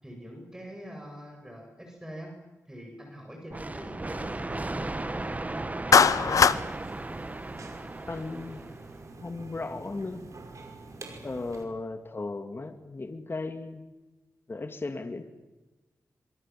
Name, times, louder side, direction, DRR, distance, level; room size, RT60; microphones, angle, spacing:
voice 1, 0.0-2.3 2.7-6.6, equal, 10° right, 2 dB, 8.0 m, -44 dB
sound 1, 3.5-9.1, right 2 dB, 25° right, 1.4 m, -36 dB
Clapping, 5.9-6.6, left 6 dB, 70° left, 1.0 m, -18 dB
sound 2, 6.0-11.6, right 3 dB, 65° right, 5.5 m, -46 dB
voice 2, 8.1-8.6 9.2-10.2 11.2-13.9 14.5-15.2, left 3 dB, 40° left, 7 dB, 2.5 m, -36 dB
26.0 x 23.5 x 7.8 m, 1.1 s
cardioid pair, 60°, 6 cm